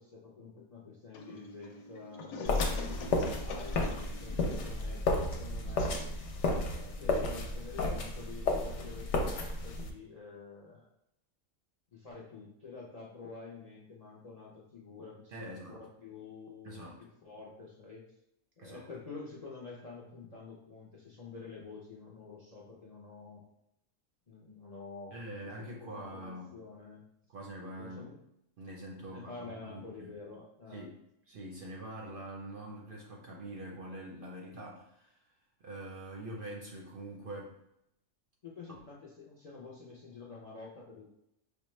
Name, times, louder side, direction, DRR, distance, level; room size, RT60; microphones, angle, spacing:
voice 1, 0.0-2.5 3.2-6.0 6.6-10.9 11.9-18.1 18.6-23.4 24.3-25.2 25.8-27.0 27.8-28.2 29.1-30.9 38.4-41.0, left 4 dB, 50° left, -4 dB, 0.4 m, -48 dB
sound 1, 1.1-7.8, left 3 dB, 90° left, 1.0 m, -46 dB
sound 2, 2.5-9.9, left 2 dB, 65° left, 0.8 m, -32 dB
voice 2, 15.3-15.8 16.6-17.0 18.6-18.8 25.1-26.5 27.3-28.1 28.6-30.1 30.7-31.0 31.3-35.3 35.6-37.6 38.7-38.8, right 1 dB, 55° right, -2 dB, 0.6 m, -44 dB
5.0 x 2.1 x 3.0 m, 0.79 s
omnidirectional pair, 1.4 m